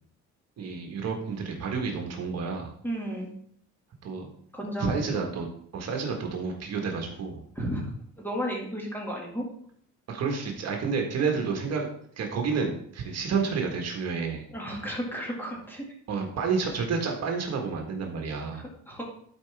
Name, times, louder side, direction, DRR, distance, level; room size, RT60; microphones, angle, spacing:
voice 1, 0.6-2.7 4.0-4.3 4.8-5.5 5.7-7.4 10.1-11.9 12.2-14.5 16.1-18.6, right 5 dB, 55° right, 2 dB, 1.6 m, -30 dB
voice 2, 2.8-3.3 4.5-5.2 7.6-7.9 8.2-9.4 14.5-15.9 18.5-19.0, equal, 5° left, -2 dB, 2.1 m, -33 dB
11.5 x 4.9 x 3.5 m, 0.63 s
cardioid pair, 135°, 31 cm